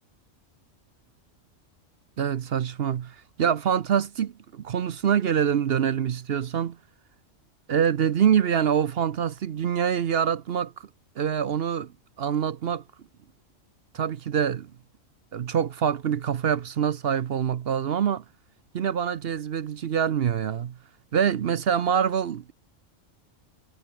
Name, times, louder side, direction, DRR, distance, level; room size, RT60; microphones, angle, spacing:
voice 1, 2.2-6.8 7.7-10.9 11.2-11.9 12.2-12.8 13.9-14.7 15.3-18.2 18.7-20.8 21.1-22.5, right 8 dB, 55° right, 0.9 m, -25 dB
omnidirectional pair, 1.3 m